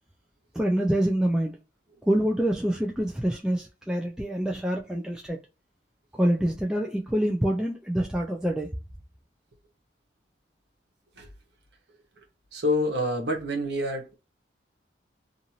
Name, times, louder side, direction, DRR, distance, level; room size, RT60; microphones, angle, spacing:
voice 1, 0.5-1.6 2.0-5.4 6.1-8.7, right 1 dB, 5° right, 0.3 m, -26 dB
voice 2, 12.5-14.2, left 1 dB, 70° right, 1.0 m, -27 dB
2.6 x 2.5 x 2.8 m
head